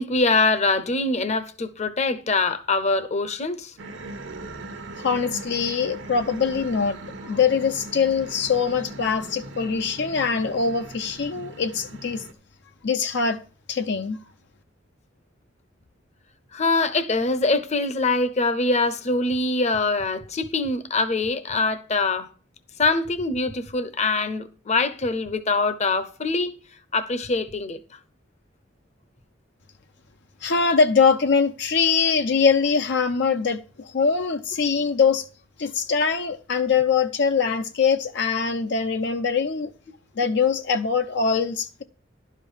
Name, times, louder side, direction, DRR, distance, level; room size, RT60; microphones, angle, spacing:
voice 1, 0.0-3.7 16.5-22.3 22.8-26.6 26.9-27.8, left 3 dB, 35° left, 0.8 m, -23 dB
sound 1, 3.8-12.3, right 2 dB, 80° right, 1.1 m, -39 dB
voice 2, 5.0-12.2 12.8-13.4 13.7-14.2 30.4-35.3 35.6-39.7 40.2-41.8, left 5 dB, 65° left, 0.6 m, -23 dB
11.5 x 5.2 x 5.6 m
head